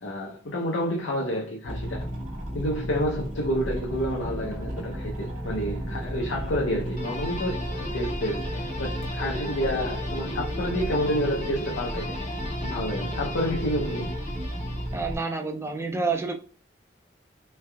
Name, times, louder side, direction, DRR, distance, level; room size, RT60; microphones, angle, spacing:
voice 1, 0.0-2.1 2.5-12.2 12.6-14.1, equal, 80° left, 0.6 m, -29 dB
sound 1, 1.6-15.2, equal, 45° right, 1.0 m, -33 dB
sound 2, 3.9-13.7, right 1 dB, 80° right, 0.8 m, -47 dB
sound 3, 7.0-15.3, left 2 dB, 40° left, 0.7 m, -37 dB
voice 2, 14.9-16.4, right 4 dB, 15° right, 0.4 m, -28 dB
3.6 x 3.2 x 2.2 m
head